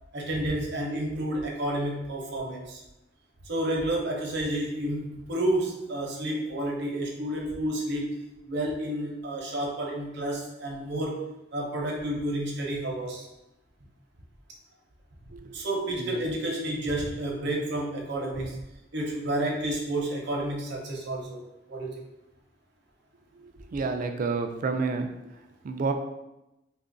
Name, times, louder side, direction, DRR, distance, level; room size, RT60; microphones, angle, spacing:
voice 1, 0.1-2.8 3.4-8.1 8.4-11.2 11.5-13.3 15.5-18.6 18.9-21.4 21.7-22.1, right 1 dB, 65° right, -1 dB, 0.8 m, -30 dB
voice 2, 23.7-25.1 25.6-25.9, right 4 dB, 45° right, 6 dB, 0.3 m, -29 dB
2.9 x 2.4 x 3.8 m, 0.93 s
head